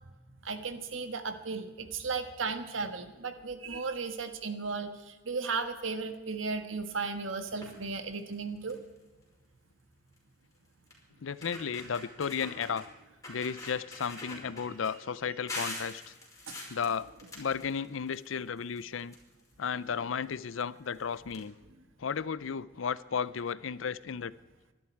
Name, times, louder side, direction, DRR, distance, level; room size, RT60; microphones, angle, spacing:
voice 1, 0.4-8.8 16.5-16.6, right 4 dB, 80° right, 8 dB, 1.6 m, -35 dB
sound 1, 7.5-7.8 8.3-8.4 8.7-9.0 10.2-10.3 10.9-11.0 11.3-12.8 13.2-14.9 15.5-18.3 18.6-19.7 20.6-20.7 20.9-21.0 21.3-21.4, left 2 dB, 20° left, 5.2 m, -43 dB
voice 2, 11.2-12.9 13.3-16.1 16.7-17.1 17.3-19.1 19.6-21.5 22.0-24.3, left 6 dB, 75° left, 17 dB, 0.5 m, -34 dB
24.0 x 12.0 x 4.6 m, 1.2 s
head